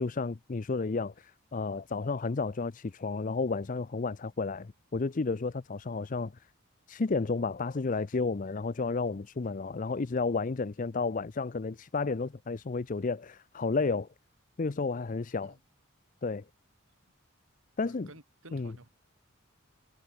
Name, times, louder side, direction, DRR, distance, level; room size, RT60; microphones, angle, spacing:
voice 1, 0.0-6.3 6.9-14.1 14.6-15.5 16.2-16.4 17.8-18.1 18.5-18.7, left 4 dB, 40° left, 0.5 m, -32 dB
voice 2, 17.8-18.9, right 2 dB, 80° right, 4.3 m, -53 dB
head